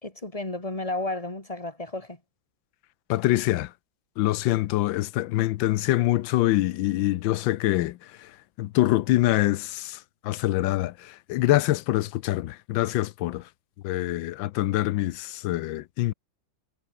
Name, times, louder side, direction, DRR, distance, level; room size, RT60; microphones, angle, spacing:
voice 1, 0.0-2.2, left 2 dB, 15° left, 3.4 m, -32 dB
voice 2, 3.1-3.7 4.2-8.0 8.6-10.0 10.2-13.4 13.8-16.1, left 16 dB, 75° left, 1.3 m, -25 dB
omnidirectional pair, 2.2 m